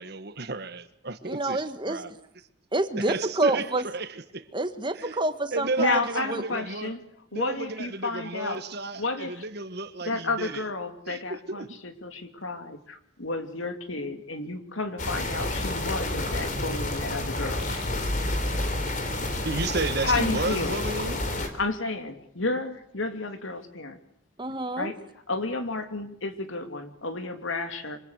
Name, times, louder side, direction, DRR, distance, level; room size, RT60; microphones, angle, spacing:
voice 1, 0.0-1.6 1.9-2.1 3.1-3.6 3.9-4.1 5.0-5.1 5.5-6.9 7.3-9.0 9.3-10.5 11.1-11.2 11.6-11.7 19.4-21.2, right 3 dB, 55° right, 1.5 m, -32 dB
voice 2, 1.2-2.0 2.7-3.8 4.5-6.0 6.3-6.4 24.4-24.9, right 2 dB, 25° right, 1.6 m, -27 dB
voice 3, 5.8-7.0 7.3-8.6 8.9-9.5 10.0-17.6 19.4-19.5 20.0-20.8 21.5-24.0 24.8-25.0 25.3-28.0, left 3 dB, 80° left, 2.9 m, -31 dB
sound 1, 15.0-21.5, left 1 dB, 40° left, 3.6 m, -30 dB
sound 2, 17.6-20.2, left 1 dB, 60° left, 5.2 m, -34 dB
27.0 x 25.0 x 8.2 m
head